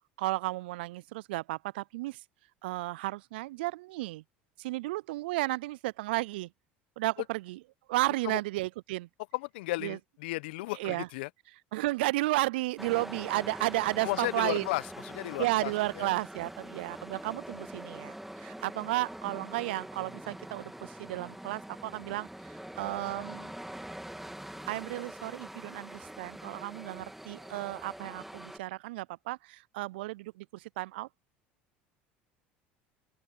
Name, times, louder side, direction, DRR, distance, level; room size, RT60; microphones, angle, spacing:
voice 1, 0.2-2.2 2.6-4.2 4.6-6.5 7.0-7.6 7.9-9.1 9.8-10.0 10.8-11.1 11.7-14.6 15.4-22.3 22.8-23.5 24.7-31.1, right 19 dB, 75° right, 0.4 m, -33 dB
voice 2, 9.3-11.3 14.0-16.1, left 20 dB, 75° left, 1.0 m, -34 dB
sound 1, 12.8-28.6, right 1 dB, 5° right, 3.1 m, -44 dB
open air
hypercardioid pair, 75°, 6 cm